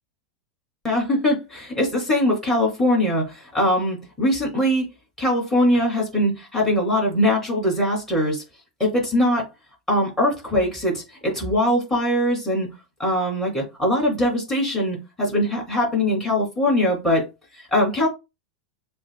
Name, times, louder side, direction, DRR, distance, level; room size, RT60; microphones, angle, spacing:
voice 1, 0.8-4.8 5.2-8.4 8.8-9.5 9.9-12.7 13.0-17.3 17.6-18.1, left 1 dB, 10° left, 2.8 m, -21 dB
7.1 x 2.4 x 2.2 m
hypercardioid pair, 105°, 4 cm